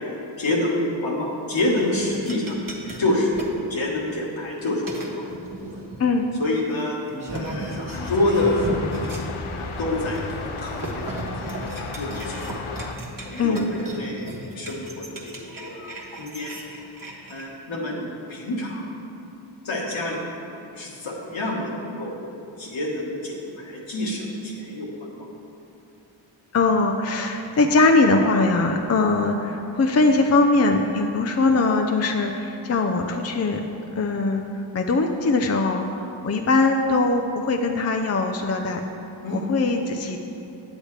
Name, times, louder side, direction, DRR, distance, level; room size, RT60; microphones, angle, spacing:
voice 1, 0.0-2.6 3.0-3.4 3.7-5.2 5.6-5.8 6.4-7.0 7.3-9.2 9.6-11.2 11.6-12.7 13.2-16.6 17.3-18.8 19.6-20.4 20.7-22.1 22.6-24.9 39.2-39.4, left 2 dB, 70° left, -3 dB, 1.6 m, -27 dB
sound 1, 1.5-3.6 4.3-4.6 4.9-6.0 6.6-6.7 7.1-9.3 9.6-9.7 10.0-17.5, right 2 dB, 45° right, 1.4 m, -36 dB
sound 2, 7.9-13.0, left 4 dB, 90° left, 0.7 m, -33 dB
voice 2, 26.5-33.6 33.9-38.8 39.3-40.2, left 3 dB, 35° left, 4 dB, 0.5 m, -21 dB
8.3 x 8.2 x 3.3 m, 2.8 s
cardioid pair, 55°, 48 cm